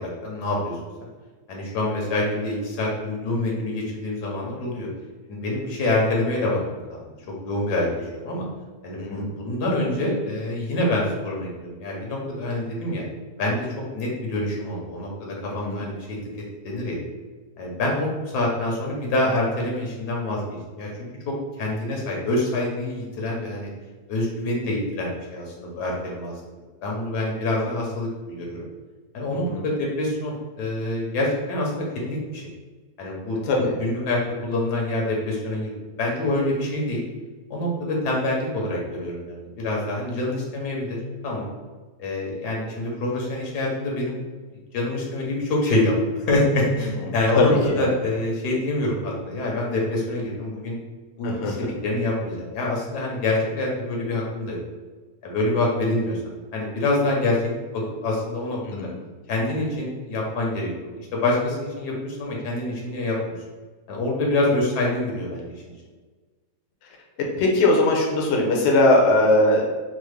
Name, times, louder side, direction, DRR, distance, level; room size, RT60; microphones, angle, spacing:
voice 1, 0.2-0.8 1.5-4.9 5.3-7.1 7.4-8.4 8.8-13.0 13.4-13.7 13.9-16.2 16.6-17.0 17.6-18.1 18.3-20.4 20.8-20.9 21.3-23.7 24.1-26.3 26.8-28.7 29.1-32.4 33.0-35.7 36.0-37.0 37.5-41.0 41.2-41.5 42.0-44.2 44.7-47.5 47.8-50.8 51.2-54.6 55.2-57.4 57.7-58.6 59.3-63.2 63.9-65.4, left 2 dB, 85° left, -2 dB, 1.4 m, -26 dB
voice 2, 9.0-9.3 15.6-15.8 29.4-29.6 33.5-33.7 46.8-46.9 47.3-47.9 51.2-51.7 58.6-58.9 67.4-69.7, left 2 dB, 60° left, 0 dB, 0.8 m, -20 dB
4.0 x 2.0 x 3.2 m, 1.3 s
omnidirectional pair, 1.7 m